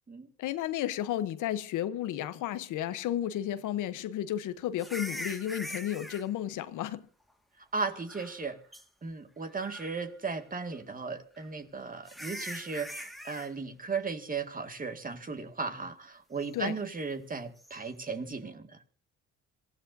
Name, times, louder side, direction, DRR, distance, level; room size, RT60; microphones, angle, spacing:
voice 1, 0.4-7.1 16.5-16.8, left 11 dB, 90° left, 1.0 m, -33 dB
sound 1, 4.8-6.2 7.9-8.4 8.7-8.8 9.5-10.0 11.4-11.5 12.1-13.5 17.6-17.8, equal, ahead, 1.8 m, -42 dB
voice 2, 7.7-8.6 9.0-18.7, right 4 dB, 30° right, 2.0 m, -36 dB
26.5 x 15.5 x 2.7 m
cardioid pair, 90°, 30 cm